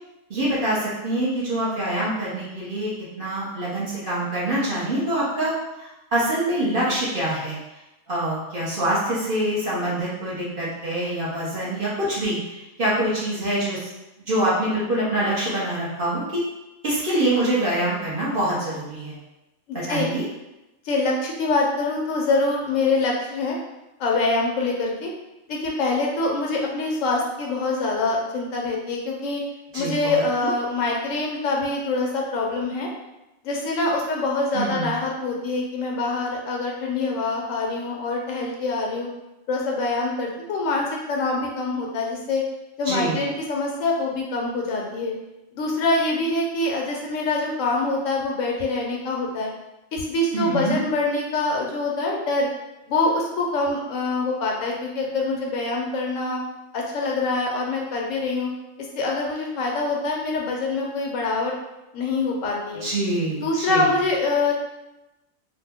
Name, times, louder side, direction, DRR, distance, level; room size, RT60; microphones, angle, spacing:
voice 1, 0.3-5.5 5.8-7.6 8.1-13.9 14.3-16.4 16.8-19.2 19.7-20.2 29.7-30.5 34.5-35.0 42.8-43.3 50.3-50.7 62.8-63.9, right 1 dB, 45° right, -8 dB, 1.0 m, -25 dB
voice 2, 19.7-20.1 20.8-23.6 24.0-25.1 25.5-29.4 29.7-32.9 33.4-39.1 39.5-42.4 42.8-45.1 45.5-49.5 49.9-52.5 52.9-56.4 56.7-58.5 58.9-61.5 61.9-62.8 63.4-64.5, left 3 dB, 70° left, -1 dB, 0.9 m, -25 dB
2.9 x 2.1 x 3.4 m, 0.97 s
omnidirectional pair, 1.4 m